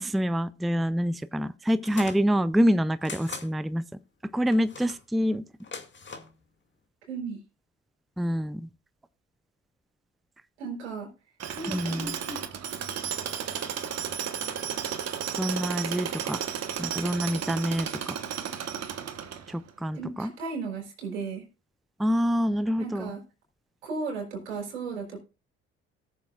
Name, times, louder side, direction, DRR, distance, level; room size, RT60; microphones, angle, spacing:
voice 1, 0.0-3.8 4.3-5.4 8.2-8.6 11.7-12.1 15.4-16.4 16.8-18.2 19.5-20.3 22.0-23.1, equal, ahead, 0.4 m, -26 dB
sound 1, 1.8-2.2 3.0-3.5 4.5-5.0 5.6-6.3, left 4 dB, 35° left, 2.2 m, -41 dB
voice 2, 7.0-7.4 10.6-11.1 11.5-12.4 20.0-21.4 22.8-23.2 23.8-25.2, right 4 dB, 90° right, 4.0 m, -35 dB
Tools, 11.4-19.7, right 8 dB, 50° right, 1.3 m, -33 dB
18.0 x 7.1 x 2.4 m
hypercardioid pair, 55°, 33 cm